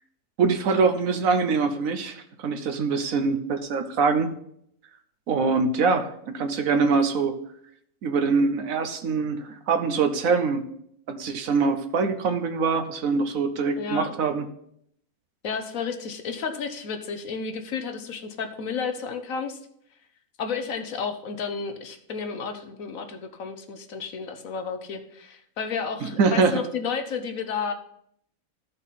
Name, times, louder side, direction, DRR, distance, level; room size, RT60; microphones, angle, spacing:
voice 1, 0.4-4.3 5.3-7.4 8.0-10.6 11.1-14.4 26.0-26.6, right 4 dB, 70° right, 9 dB, 1.2 m, -24 dB
voice 2, 13.8-14.1 15.4-19.6 20.4-27.7, left 5 dB, 65° left, 7 dB, 1.3 m, -32 dB
14.0 x 5.5 x 4.1 m, 0.71 s
omnidirectional pair, 1.6 m